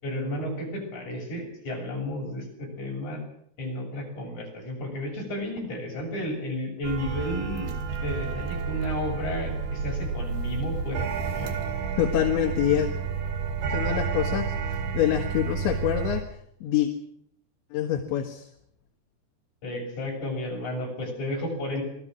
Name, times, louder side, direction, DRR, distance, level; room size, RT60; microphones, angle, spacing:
voice 1, 0.0-3.2 3.6-11.6 19.6-21.8, left 1 dB, 40° left, 0 dB, 8.1 m, -32 dB
sound 1, 6.8-16.2, right 5 dB, 65° right, 4.5 m, -30 dB
voice 2, 12.0-12.9 13.7-16.3 16.6-16.9 17.7-18.5, left 12 dB, 75° left, 3 dB, 3.8 m, -26 dB
26.5 x 19.5 x 6.4 m, 0.70 s
omnidirectional pair, 5.5 m